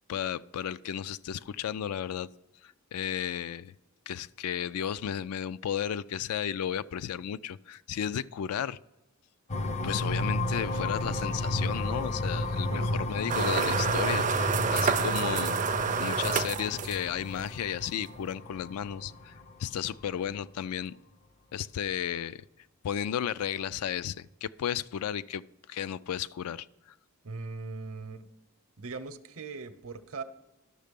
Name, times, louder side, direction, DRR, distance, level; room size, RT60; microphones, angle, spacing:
voice 1, 0.1-2.3 2.6-3.7 4.1-8.8 9.8-15.7 16.0-19.3 19.6-21.0 21.5-22.4 22.8-25.4 25.7-26.7, left 9 dB, 80° left, 17 dB, 0.3 m, -34 dB
sound 1, 9.5-20.0, left 2 dB, 30° left, 0.5 m, -33 dB
sound 2, 13.3-17.3, right 5 dB, 35° right, 0.4 m, -28 dB
voice 2, 27.2-28.3 28.8-30.2, right 4 dB, 65° right, 11 dB, 0.7 m, -40 dB
11.5 x 6.5 x 5.2 m, 0.95 s
head